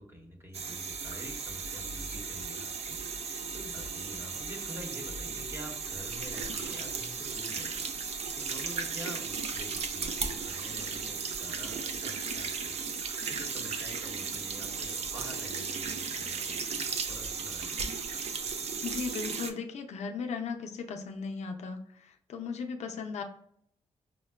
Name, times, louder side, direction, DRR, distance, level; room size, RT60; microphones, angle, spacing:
voice 1, 0.0-12.7 13.2-17.8, equal, 20° right, 1 dB, 1.0 m, -47 dB
sound 1, 0.5-19.5, right 5 dB, 65° right, 0.5 m, -36 dB
voice 2, 18.8-23.2, left 5 dB, 70° left, 5 dB, 0.5 m, -37 dB
5.3 x 2.1 x 2.2 m, 0.68 s
wide cardioid pair, 115°, 12 cm